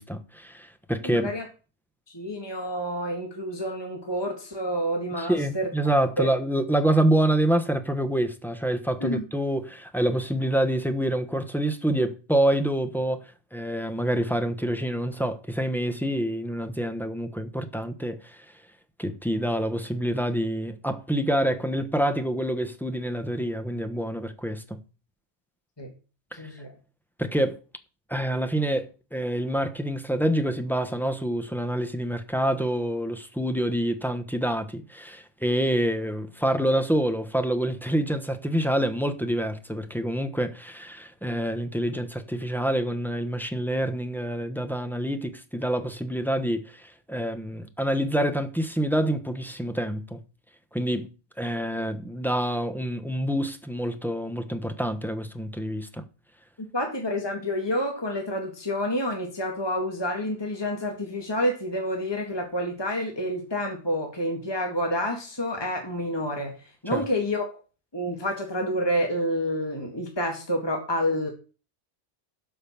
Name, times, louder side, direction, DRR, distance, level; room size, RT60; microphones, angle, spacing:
voice 1, 0.0-1.3 5.2-13.2 13.5-18.4 19.0-24.8 26.3-26.4 27.2-27.6 28.1-50.2 50.7-51.1 51.4-56.0 66.9-67.0, right 1 dB, ahead, 1.0 m, -27 dB
voice 2, 1.0-1.5 2.1-5.7 6.2-6.3 9.0-9.2 25.8-25.9 26.3-26.7 56.7-67.5 67.9-71.3, equal, 20° left, 1.9 m, -28 dB
12.0 x 5.5 x 7.2 m
omnidirectional pair, 1.2 m